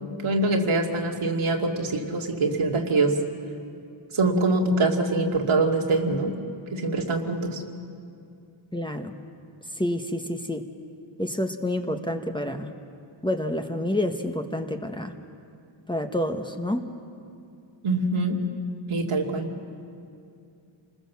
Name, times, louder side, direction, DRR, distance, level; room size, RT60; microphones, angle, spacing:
voice 1, 0.2-3.1 4.1-6.3 6.7-7.6 17.8-18.4 18.9-19.5, right 2 dB, 85° right, 1 dB, 2.5 m, -24 dB
voice 2, 8.7-9.1 9.8-10.6 11.2-12.7 13.2-15.1 15.9-16.8, left 1 dB, 10° left, 5 dB, 1.4 m, -28 dB
28.0 x 20.5 x 7.3 m, 2.4 s
wide cardioid pair, 85°, 48 cm